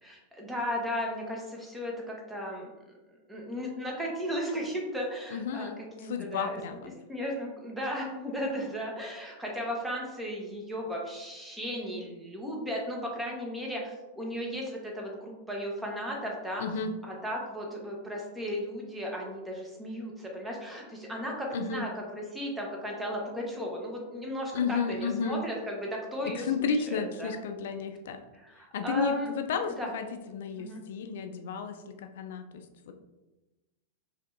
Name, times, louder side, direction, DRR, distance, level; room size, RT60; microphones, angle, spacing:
voice 1, 0.0-2.7 3.3-16.8 17.0-27.3 28.3-29.3 29.7-29.9 30.6-30.8, equal, 10° right, -1 dB, 1.2 m, -35 dB
voice 2, 5.3-5.8 6.1-6.8 16.6-16.9 21.5-21.8 24.5-25.4 26.5-28.2 28.7-32.6, left 5 dB, 65° left, 7 dB, 0.5 m, -32 dB
5.0 x 3.3 x 2.7 m, 1.1 s
hypercardioid pair, 100°, 0 cm